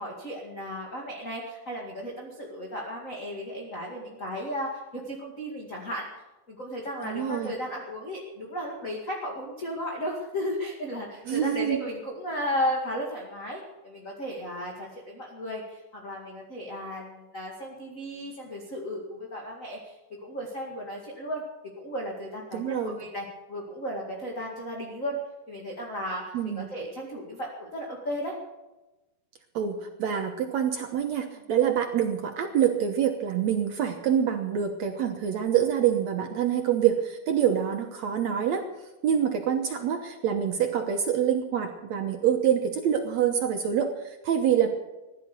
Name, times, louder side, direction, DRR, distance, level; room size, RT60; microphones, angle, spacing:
voice 1, 0.0-6.1 6.5-20.0 20.2-21.4 21.8-25.2 25.5-28.3, equal, 30° left, -1 dB, 1.8 m, -35 dB
voice 2, 7.0-7.5 11.3-11.8 22.5-23.0 26.3-26.7 29.5-38.7 39.0-44.7, right 9 dB, 70° right, 4 dB, 1.7 m, -26 dB
15.5 x 11.5 x 6.7 m, 1.0 s
omnidirectional pair, 4.4 m